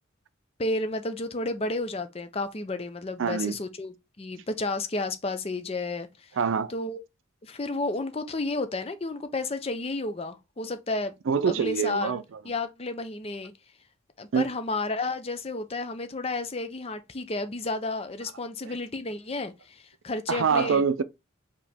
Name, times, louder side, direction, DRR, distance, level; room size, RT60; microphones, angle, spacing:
voice 1, 0.6-6.3 6.7-7.0 7.4-11.1 11.5-13.5 14.2-20.9, left 2 dB, 30° left, 0.5 m, -32 dB
voice 2, 3.2-3.6 6.4-6.7 11.3-12.2 14.3-14.4 20.3-21.0, right 6 dB, 75° right, 0.4 m, -25 dB
4.9 x 2.9 x 3.4 m
head